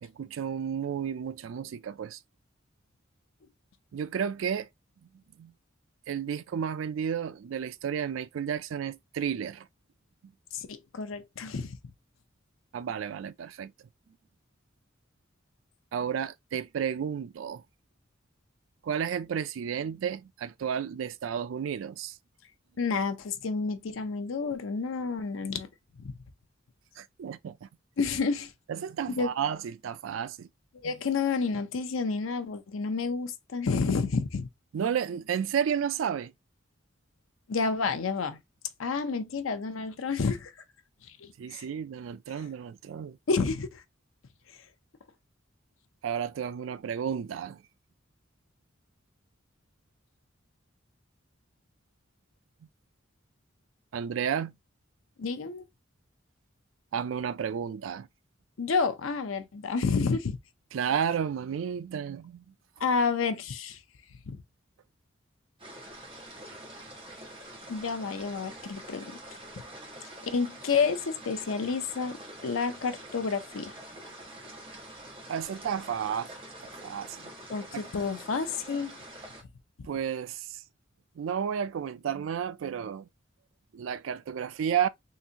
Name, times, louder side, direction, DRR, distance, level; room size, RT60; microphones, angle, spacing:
voice 1, 0.0-2.2 3.9-4.7 5.4-5.5 6.1-9.7 12.7-13.7 15.9-17.6 18.8-22.2 27.0-27.7 28.7-30.5 30.8-30.9 34.7-36.3 41.4-43.2 46.0-47.6 53.9-54.5 56.9-58.1 60.7-62.4 75.3-76.3 76.8-77.3 77.7-77.8 79.9-80.6 81.2-83.1 83.7-84.9, right 8 dB, 70° right, 0.3 m, -32 dB
voice 2, 10.5-11.8 22.8-25.7 26.0-26.1 28.0-28.5 29.2-29.3 30.8-34.5 37.5-38.4 38.8-40.5 41.2-41.6 43.3-43.8 55.2-55.6 58.6-60.4 62.8-63.8 64.3-64.4 67.7-69.2 70.2-73.7 77.5-79.0, left 4 dB, 85° left, 0.6 m, -30 dB
sound 1, 65.6-79.4, right 1 dB, 30° right, 1.3 m, -46 dB
3.8 x 2.6 x 2.8 m
head